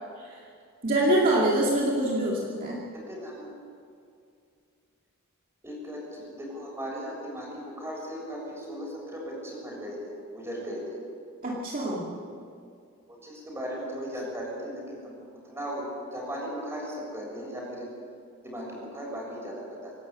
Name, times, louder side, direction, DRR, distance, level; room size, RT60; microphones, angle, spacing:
voice 1, 0.8-2.8 11.4-12.1, right 1 dB, 40° right, -4 dB, 2.4 m, -25 dB
voice 2, 2.9-3.5 5.6-10.0 10.3-11.0 11.9-12.2 13.1-15.2 15.4-17.9 18.4-19.9, equal, 10° right, -3 dB, 7.0 m, -37 dB
26.0 x 12.5 x 8.4 m, 2.4 s
head